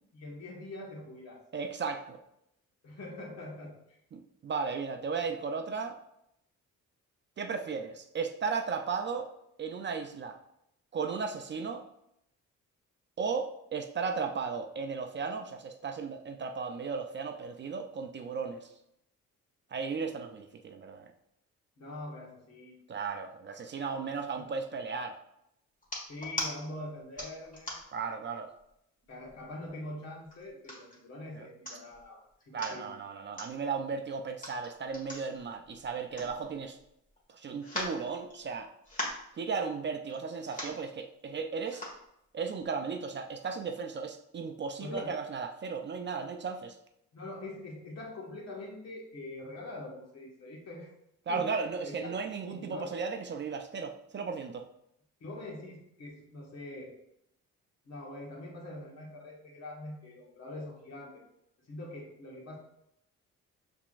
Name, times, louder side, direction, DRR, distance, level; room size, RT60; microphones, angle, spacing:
voice 1, 0.1-1.4 2.8-4.0 21.8-22.8 24.3-24.5 26.1-27.8 29.1-32.9 44.8-45.2 47.1-50.9 51.3-52.9 55.2-57.0 57.8-61.2 61.6-62.6, left 1 dB, 60° left, -2 dB, 1.6 m, -44 dB
voice 2, 1.5-2.2 4.1-6.0 7.4-9.3 9.6-10.4 10.9-11.8 13.2-18.7 19.7-21.1 22.9-25.2 27.9-28.5 31.4-31.5 32.5-36.8 37.3-38.7 39.4-41.8 42.3-46.8 51.3-54.7, right 5 dB, 40° right, 5 dB, 0.5 m, -35 dB
sound 1, 25.8-26.5 27.2-28.0 28.6-28.7 29.0-29.7 30.3-31.0 31.4-31.5 31.7-32.0 32.4-32.8 33.3-33.5 34.3-36.8 37.1-37.2 37.6-38.6 38.8-39.3 40.1-40.2 40.4-40.8 41.6-42.0 42.6-42.7, left 1 dB, 25° left, 1.5 m, -39 dB
5.6 x 3.5 x 2.5 m, 0.78 s
cardioid pair, 90°, 30 cm